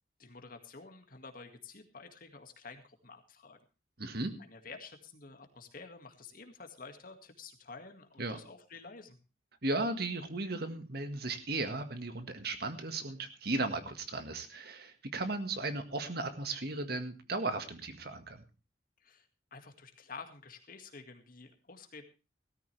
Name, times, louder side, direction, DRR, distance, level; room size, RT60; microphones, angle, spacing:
voice 1, 0.2-3.6 4.4-9.2 19.0-22.0, left 4 dB, 50° left, 6 dB, 2.1 m, -50 dB
voice 2, 4.0-4.3 8.2-8.4 9.6-18.4, right 2 dB, 60° right, 8 dB, 1.8 m, -36 dB
17.0 x 14.0 x 3.4 m, 0.32 s
head